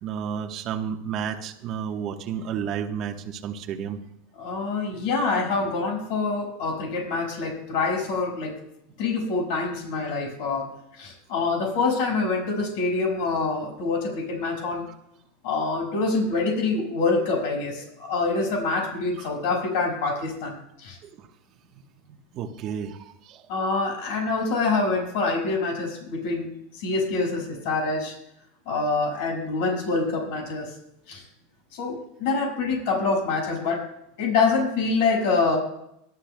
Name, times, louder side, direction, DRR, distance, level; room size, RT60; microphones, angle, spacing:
voice 1, 0.0-4.0 19.2-19.3 21.0-21.3 22.1-23.4, right 8 dB, 45° right, 3 dB, 1.2 m, -32 dB
voice 2, 4.4-8.5 9.0-10.6 11.0-14.9 15.4-21.0 23.5-26.5 26.8-28.1 28.7-30.7 31.1-31.2 31.7-33.8 34.2-35.6, left 3 dB, 65° left, 0 dB, 6.1 m, -25 dB
24.0 x 12.5 x 2.3 m, 0.78 s
supercardioid pair, 120°, 0 cm